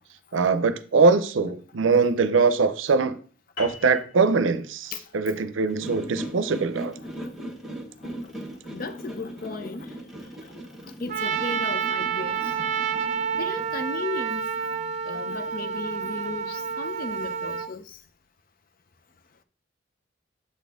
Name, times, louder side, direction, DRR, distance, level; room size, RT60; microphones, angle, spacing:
voice 1, 0.3-3.2 3.6-6.9, right 4 dB, 90° right, 0.5 m, -22 dB
sound 1, 3.6-8.3, left 3 dB, 75° left, 2.0 m, -44 dB
sound 2, 5.7-17.4, right 1 dB, ahead, 1.1 m, -40 dB
voice 2, 8.7-10.0 11.0-12.5 13.4-14.4 15.0-18.0, left 3 dB, 50° left, 0.5 m, -35 dB
Trumpet, 11.1-17.7, right 7 dB, 40° right, 0.6 m, -29 dB
7.3 x 4.2 x 3.5 m
head